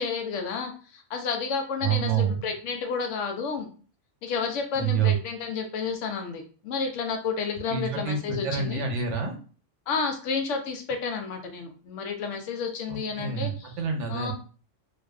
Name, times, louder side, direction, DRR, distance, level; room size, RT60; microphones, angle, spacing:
voice 1, 0.0-3.7 4.2-8.8 9.9-13.7 14.1-14.3, left 5 dB, 90° left, 4 dB, 0.9 m, -31 dB
voice 2, 1.8-2.4 4.8-5.1 7.7-9.3 12.9-14.3, right 7 dB, 75° right, 3 dB, 0.9 m, -27 dB
2.6 x 2.3 x 2.3 m, 0.39 s
omnidirectional pair, 1.2 m